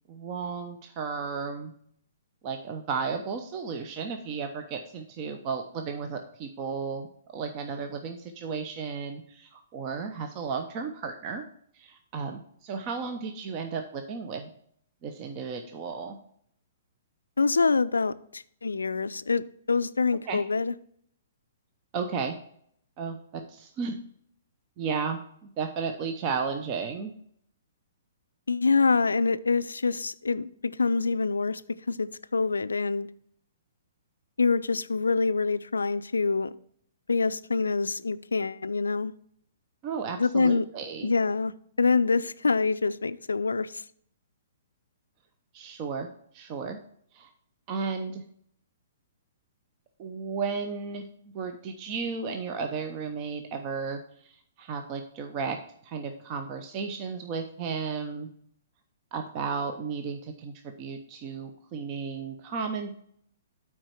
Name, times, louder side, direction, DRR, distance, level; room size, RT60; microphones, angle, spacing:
voice 1, 0.1-1.7 2.4-7.1 7.3-11.4 11.7-14.5 15.0-16.2 20.3-20.4 21.9-22.4 23.0-24.0 24.8-27.1 39.8-41.1 45.5-46.1 46.3-46.8 47.1-47.3 47.7-48.2 50.0-51.1 51.3-54.3 54.6-55.6 55.8-58.3 59.1-62.9, right 5 dB, 35° right, 0.7 m, -34 dB
voice 2, 17.4-20.7 28.5-31.6 31.9-33.1 34.4-36.5 37.1-39.1 40.2-40.7 41.0-41.5 41.8-43.8, left 4 dB, 75° left, 0.4 m, -25 dB
8.8 x 4.7 x 4.4 m
figure-of-eight pair, 120°, 0 cm